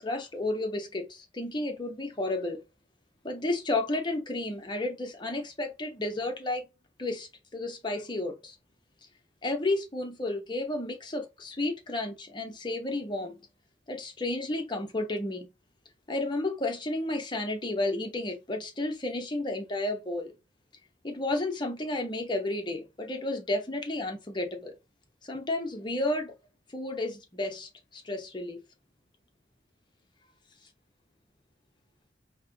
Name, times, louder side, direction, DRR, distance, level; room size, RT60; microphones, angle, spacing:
voice 1, 0.0-2.6 3.2-6.7 7.0-8.5 9.4-13.4 13.9-15.5 16.1-20.3 21.0-24.7 25.2-26.3 26.7-28.6, left 2 dB, 25° left, 0.7 m, -32 dB
4.2 x 2.1 x 3.8 m
head